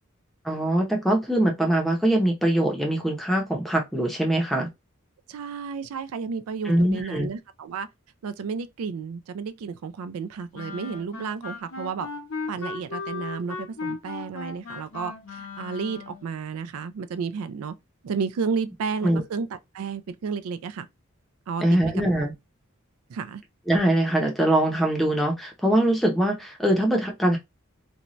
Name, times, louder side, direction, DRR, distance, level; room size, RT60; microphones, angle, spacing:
voice 1, 0.4-4.7 6.7-7.3 19.0-19.2 21.6-22.3 23.7-27.4, right 1 dB, ahead, 0.6 m, -22 dB
voice 2, 5.3-7.9 8.2-12.1 12.5-17.7 18.0-19.5 19.7-20.9 21.5-21.8 22.2-22.3 23.1-23.4, right 5 dB, 90° right, 0.4 m, -32 dB
Wind instrument woodwind instrument, 10.5-16.3, left 4 dB, 70° left, 0.8 m, -36 dB
2.6 x 2.2 x 3.0 m
head